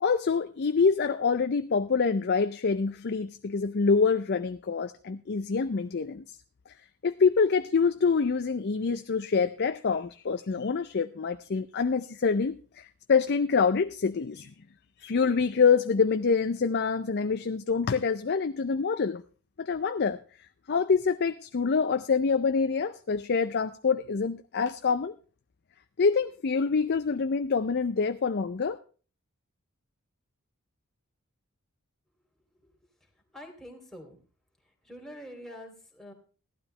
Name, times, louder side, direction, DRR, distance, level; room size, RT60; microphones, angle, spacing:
voice 1, 0.0-6.2 7.0-14.5 15.0-19.2 19.6-20.2 20.7-25.1 26.0-28.8, left 5 dB, 50° left, 9 dB, 0.5 m, -26 dB
voice 2, 33.3-34.2 34.8-36.1, equal, ahead, 1 dB, 2.8 m, -45 dB
15.5 x 12.0 x 3.2 m, 0.38 s
head